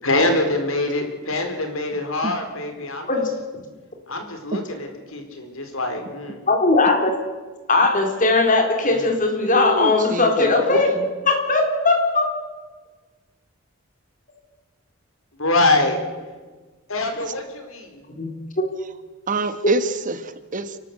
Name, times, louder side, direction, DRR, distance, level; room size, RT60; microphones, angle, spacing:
voice 1, 0.0-3.1 4.1-6.4 8.8-9.1 10.7-10.8 15.4-16.0 16.9-18.1, left 2 dB, 75° left, 5 dB, 4.1 m, -24 dB
voice 2, 6.5-7.1 7.7-10.9 11.3-12.3 18.2-18.3 19.6-19.7, left 3 dB, 40° left, 3 dB, 4.0 m, -19 dB
voice 3, 9.5-10.5 19.3-20.8, right 3 dB, 40° right, 11 dB, 1.1 m, -26 dB
29.5 x 13.0 x 8.3 m, 1.3 s
head